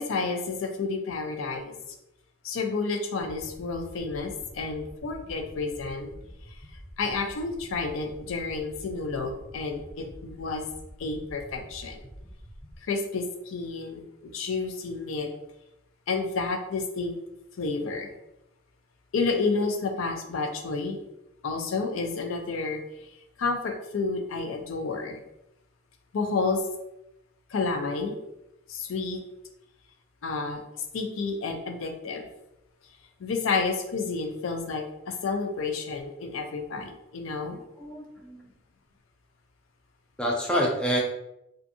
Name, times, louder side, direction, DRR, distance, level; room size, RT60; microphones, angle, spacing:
voice 1, 0.0-1.7 2.4-6.1 7.0-10.7 11.0-12.0 12.8-15.3 16.1-17.2 17.6-18.1 19.1-21.0 21.4-23.1 23.4-25.2 26.1-26.6 27.5-28.2 28.7-29.2 30.2-30.6 30.9-32.3 33.2-37.6, left 4 dB, 75° left, 5 dB, 0.4 m, -30 dB
sound 1, 3.2-12.8, equal, 40° left, 0.8 m, -47 dB
voice 2, 37.5-38.4 40.2-41.0, equal, 5° left, -3 dB, 0.4 m, -28 dB
2.6 x 2.5 x 2.5 m, 0.84 s
head